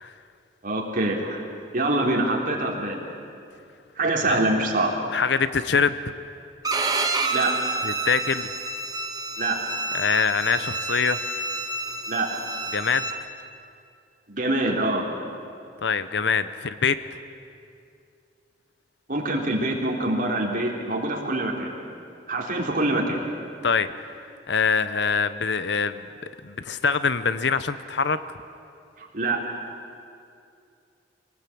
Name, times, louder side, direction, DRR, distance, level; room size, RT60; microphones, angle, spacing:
voice 1, 0.6-1.4 1.7-3.0 4.0-4.9 7.3-7.6 9.4-9.6 12.1-12.3 14.3-15.1 19.1-21.7 22.3-23.2 29.0-29.4, right 2 dB, 50° right, 0 dB, 3.6 m, -25 dB
voice 2, 5.1-6.0 7.8-8.5 9.9-11.2 12.7-13.0 15.8-17.2 23.6-23.9 24.5-26.1 26.4-28.2, left 5 dB, 65° left, 13 dB, 0.8 m, -24 dB
Bowed string instrument, 6.6-13.2, right 3 dB, 20° right, 1.5 m, -29 dB
25.0 x 18.5 x 8.6 m, 2.5 s
head